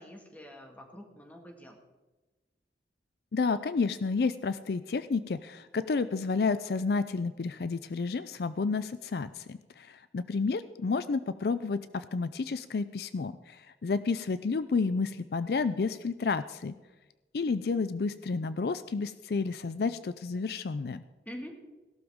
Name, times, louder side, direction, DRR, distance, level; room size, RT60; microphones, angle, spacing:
voice 1, 0.0-1.8 21.3-21.5, equal, 10° left, 3 dB, 1.8 m, -45 dB
voice 2, 3.3-16.8 17.3-21.0, left 4 dB, 60° left, 13 dB, 0.4 m, -31 dB
17.5 x 12.0 x 3.6 m, 1.2 s
head